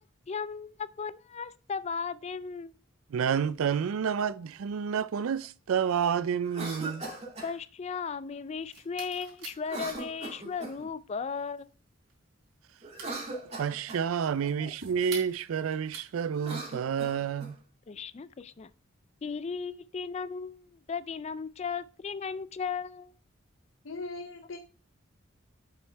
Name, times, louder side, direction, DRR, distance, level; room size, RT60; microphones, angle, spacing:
voice 1, 0.3-2.7 7.4-11.7 14.4-14.7 17.9-18.7 19.2-23.1, left 5 dB, 30° left, 0.3 m, -36 dB
voice 2, 3.1-7.0 13.6-17.6, right 7 dB, 90° right, 0.4 m, -29 dB
Cough, 6.4-7.5 9.6-10.9 12.8-14.1 16.3-17.5, right 3 dB, 30° right, 2.2 m, -39 dB
sound 1, 8.5-16.4, right 4 dB, 60° right, 3.6 m, -48 dB
voice 3, 23.8-24.6, left 3 dB, 70° left, 0.6 m, -39 dB
7.9 x 6.2 x 3.3 m
head